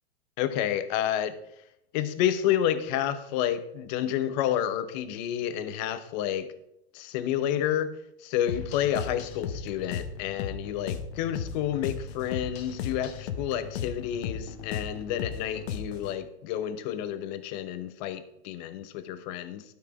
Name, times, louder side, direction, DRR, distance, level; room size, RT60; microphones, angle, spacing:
voice 1, 0.4-1.3 1.9-6.5 6.9-7.9 8.2-19.6, left 10 dB, 40° left, 12 dB, 1.0 m, -30 dB
sound 1, 8.5-16.1, left 7 dB, 70° left, 1.5 m, -36 dB
12.5 x 6.7 x 4.9 m, 0.77 s
supercardioid pair, 150°, 33 cm